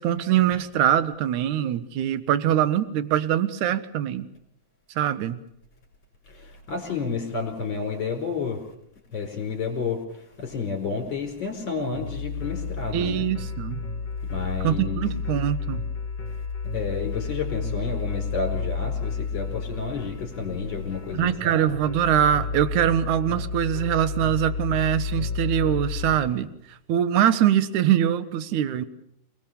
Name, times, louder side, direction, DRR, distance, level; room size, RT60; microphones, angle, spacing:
voice 1, 0.0-4.3 5.0-5.4 12.9-13.8 14.6-15.8 21.1-26.5 26.9-28.8, right 11 dB, 65° right, 13 dB, 2.2 m, -23 dB
voice 2, 6.3-8.6 9.1-13.3 14.2-15.1 16.3-16.4 16.7-21.8, left 5 dB, 30° left, 3 dB, 5.0 m, -31 dB
sound 1, 11.9-26.2, left 5 dB, 45° left, 3.6 m, -31 dB
28.5 x 19.0 x 7.0 m, 0.77 s
omnidirectional pair, 4.4 m